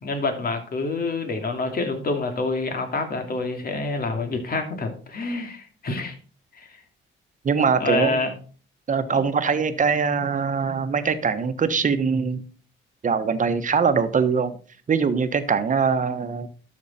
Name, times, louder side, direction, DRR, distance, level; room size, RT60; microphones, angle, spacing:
voice 1, 0.0-6.1 6.6-6.8 7.8-8.3 9.1-9.2, left 3 dB, 50° left, 2.6 m, -27 dB
voice 2, 7.4-8.2 8.9-12.4 13.0-14.5 14.9-16.5, right 5 dB, 40° right, 1.3 m, -22 dB
12.0 x 6.5 x 4.4 m
cardioid pair, 90°, 20 cm